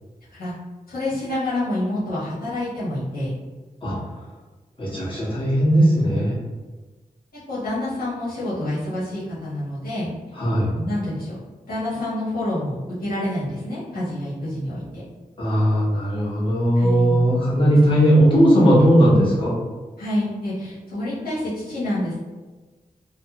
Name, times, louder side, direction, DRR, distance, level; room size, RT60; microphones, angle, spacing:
voice 1, 0.9-3.3 7.5-10.1 10.7-11.3 11.6-15.0 16.8-17.2 20.0-22.1, left 1 dB, 80° left, -10 dB, 1.1 m, -27 dB
voice 2, 4.8-6.4 10.4-10.7 15.4-19.6, equal, 35° left, -9 dB, 1.3 m, -17 dB
3.1 x 2.1 x 2.9 m, 1.3 s
cardioid pair, 60°, 15 cm